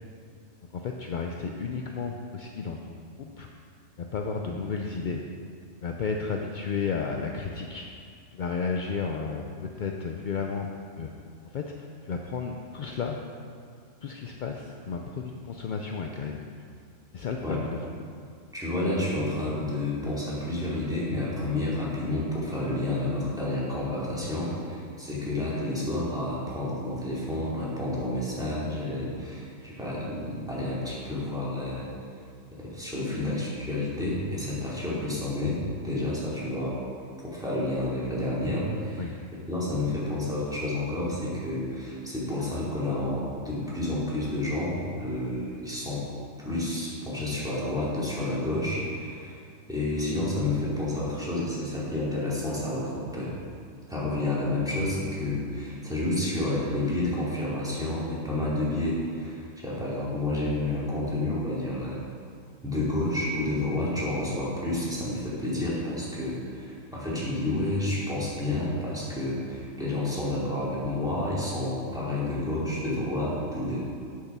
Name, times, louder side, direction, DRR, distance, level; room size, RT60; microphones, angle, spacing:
voice 1, 0.7-3.5 4.0-5.2 5.8-7.9 8.3-10.7 11.0-11.1 11.5-13.2 14.0-16.4 17.1-17.8 39.0-39.1, left 5 dB, 60° left, 2 dB, 0.5 m, -33 dB
voice 2, 18.5-31.9 32.6-36.8 37.2-39.1 39.5-46.0 46.4-49.4 49.7-53.3 53.9-62.0 62.6-73.9, left 1 dB, 5° right, -8 dB, 2.6 m, -30 dB
8.6 x 6.5 x 6.0 m, 2.3 s
omnidirectional pair, 1.4 m